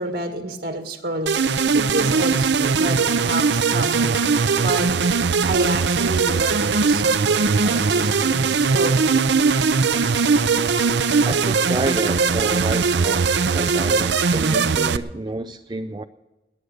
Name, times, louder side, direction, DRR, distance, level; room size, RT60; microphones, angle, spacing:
voice 1, 0.0-9.1, right 2 dB, 65° right, 1.6 m, -29 dB
sound 1, 1.3-15.0, right 5 dB, 80° right, 0.6 m, -20 dB
voice 2, 11.2-16.0, right 2 dB, 25° right, 0.4 m, -29 dB
20.0 x 9.5 x 6.6 m
head